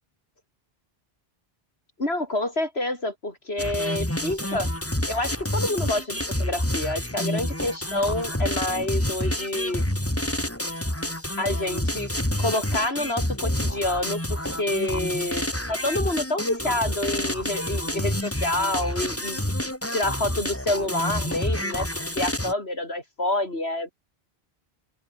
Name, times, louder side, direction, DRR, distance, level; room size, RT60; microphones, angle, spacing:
voice 1, 2.0-4.7 5.1-9.8 11.4-12.1 12.4-19.4 19.9-23.9, left 2 dB, 85° left, 5.9 m, -28 dB
sound 1, 3.6-22.5, left 1 dB, 15° left, 3.6 m, -28 dB
open air
omnidirectional pair, 1.0 m